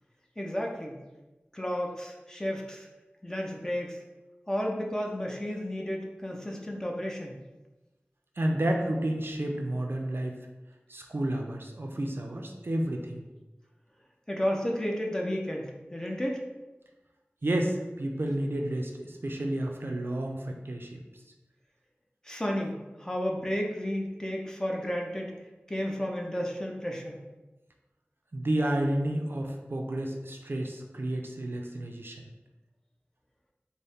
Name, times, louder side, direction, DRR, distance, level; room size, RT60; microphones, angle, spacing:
voice 1, 0.4-1.0 1.5-2.9 3.2-4.0 4.5-7.4 14.3-16.4 22.2-25.3 25.7-27.2, equal, 15° left, 0 dB, 0.6 m, -32 dB
voice 2, 8.4-10.4 10.9-13.2 17.4-21.0 28.3-32.3, right 1 dB, 60° right, 2 dB, 0.4 m, -31 dB
4.0 x 2.0 x 3.5 m, 1.1 s
wide cardioid pair, 55°, 4 cm